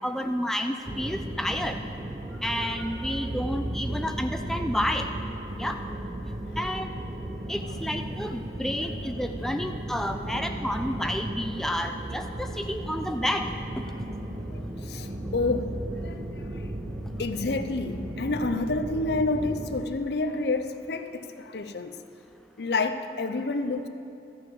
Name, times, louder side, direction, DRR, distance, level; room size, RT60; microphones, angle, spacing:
voice 1, 0.0-1.8 2.4-5.1 5.6-5.8 6.6-6.9 7.5-13.5, equal, ahead, 5 dB, 0.3 m, -30 dB
sound 1, 0.8-19.8, right 1 dB, 25° right, 0.7 m, -35 dB
voice 2, 14.5-15.7 16.0-16.7 17.2-22.0 22.6-23.9, left 3 dB, 60° left, 9 dB, 0.6 m, -29 dB
13.5 x 6.0 x 7.8 m, 2.7 s
head